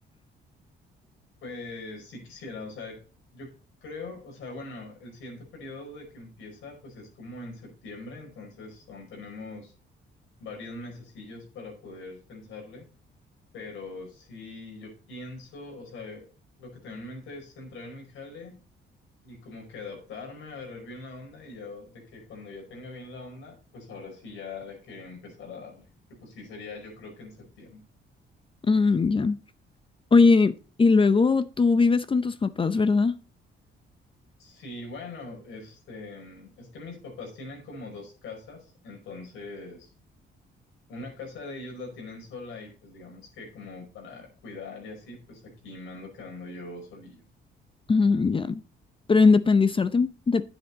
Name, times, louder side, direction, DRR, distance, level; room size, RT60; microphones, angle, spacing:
voice 1, 1.4-3.0 3.3-3.5 3.8-9.7 10.4-12.9 13.5-16.3 16.6-18.6 19.2-27.8 34.4-39.9 40.9-47.2, left 3 dB, 85° left, 5.1 m, -42 dB
voice 2, 28.6-29.4 30.1-33.1 47.9-48.6 49.1-50.4, left 4 dB, 25° left, 0.6 m, -20 dB
9.9 x 8.0 x 4.0 m
cardioid pair, 90°, 20 cm